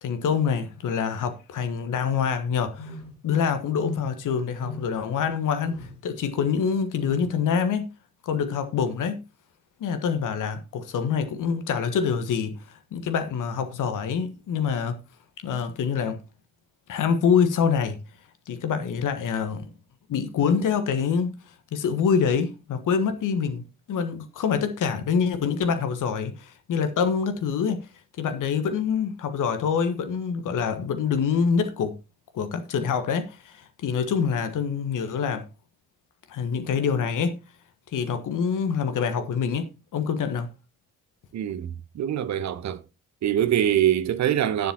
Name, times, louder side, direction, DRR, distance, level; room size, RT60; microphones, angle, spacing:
voice 1, 0.0-3.0 3.2-7.9 8.2-9.2 9.8-15.0 15.4-16.2 16.9-18.0 18.5-19.7 20.1-23.6 23.9-27.9 28.2-31.9 32.3-35.4 36.3-37.4 37.9-40.5, left 6 dB, 45° left, 1.4 m, -26 dB
sound 1, 2.7-3.3 3.7-4.2 4.6-5.1 5.6-6.0 6.9-7.4, left 3 dB, 80° left, 2.5 m, -37 dB
voice 2, 41.3-42.8 43.2-44.7, right 11 dB, 40° right, 1.1 m, -24 dB
18.0 x 7.3 x 2.9 m
figure-of-eight pair, 45°, 43 cm